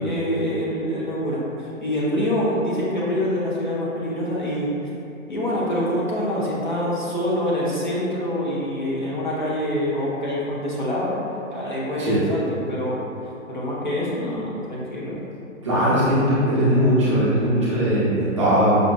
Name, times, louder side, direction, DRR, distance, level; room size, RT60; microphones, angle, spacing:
voice 1, 0.0-4.7 5.3-11.1 11.5-13.0 13.5-15.3, equal, 40° left, -7 dB, 0.5 m, -25 dB
voice 2, 15.6-18.9, equal, 25° right, -10 dB, 0.6 m, -19 dB
5.0 x 2.2 x 2.2 m, 2.7 s
figure-of-eight pair, 135°, 41 cm